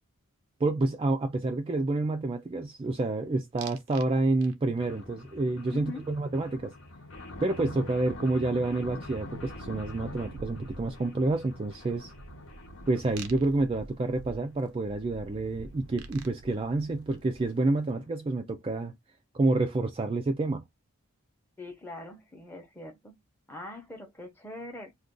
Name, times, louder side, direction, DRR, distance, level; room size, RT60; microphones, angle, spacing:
voice 1, 0.6-6.7 7.4-12.1 12.9-18.9 19.3-20.6, right 2 dB, 25° right, 0.3 m, -28 dB
sound 1, 3.6-4.1 4.4-4.9 7.3-7.4 7.6-17.7, right 3 dB, 85° right, 0.5 m, -47 dB
sound 2, 4.7-13.3 13.9-14.0 14.2-14.3 14.6-14.7 15.0-15.1 15.4-15.5 16.2-16.3 16.5-16.6 16.9-17.0 17.3-17.4 17.7-17.8, left 2 dB, 65° left, 0.9 m, -45 dB
voice 2, 5.7-6.1 21.6-23.1 23.5-24.9, left 2 dB, 10° left, 0.7 m, -42 dB
2.5 x 2.3 x 3.6 m
head